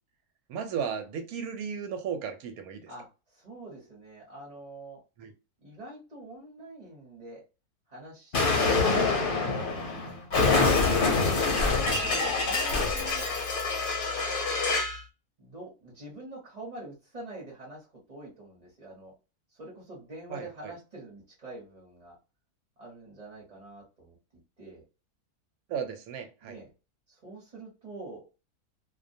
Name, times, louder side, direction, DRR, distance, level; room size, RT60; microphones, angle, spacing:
voice 1, 0.5-2.9 5.2-5.3 20.3-20.7 25.7-26.6, right 7 dB, 75° right, 1.0 m, -35 dB
voice 2, 2.9-5.0 5.6-7.4 7.9-8.8 9.3-9.5 11.9-13.3 15.4-19.1 19.5-22.2 22.8-24.1 24.6-24.8 26.4-26.7 27.1-28.2, right 2 dB, 35° right, 0.8 m, -45 dB
Explosion, 8.3-15.0, left 3 dB, 50° left, 0.7 m, -26 dB
2.4 x 2.2 x 2.6 m
omnidirectional pair, 1.6 m